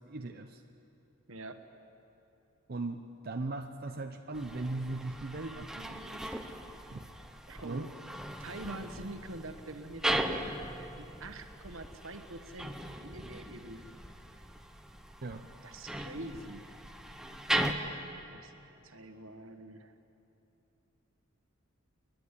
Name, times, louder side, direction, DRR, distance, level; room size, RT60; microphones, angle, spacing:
voice 1, 0.1-0.6 2.7-6.2 6.9-7.1 7.6-7.9 15.2-15.5 17.8-18.0, right 2 dB, 50° right, 4 dB, 0.7 m, -39 dB
voice 2, 1.3-1.6 7.5-7.9 8.4-10.7 10.9-13.8 15.6-16.7 18.3-18.5 18.8-19.9, right 2 dB, 75° right, 8 dB, 1.4 m, -45 dB
sound 1, 4.3-17.7, right 1 dB, 5° right, 0.9 m, -38 dB
29.0 x 10.5 x 9.8 m, 3.0 s
head